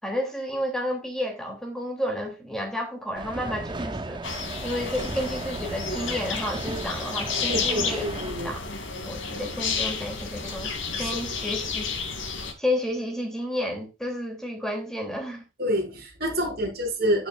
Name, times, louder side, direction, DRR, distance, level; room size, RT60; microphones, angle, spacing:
voice 1, 0.0-8.0 8.4-8.6 9.0-10.7 11.0-11.9 12.6-15.5, left 1 dB, 5° left, 3.1 m, -31 dB
sound 1, 3.1-8.3, right 2 dB, 25° right, 0.7 m, -36 dB
sound 2, 4.2-12.5, left 5 dB, 75° left, 2.9 m, -31 dB
voice 2, 7.5-8.5 11.0-11.2 15.6-17.3, equal, 50° right, 5.4 m, -27 dB
15.5 x 6.9 x 2.5 m
head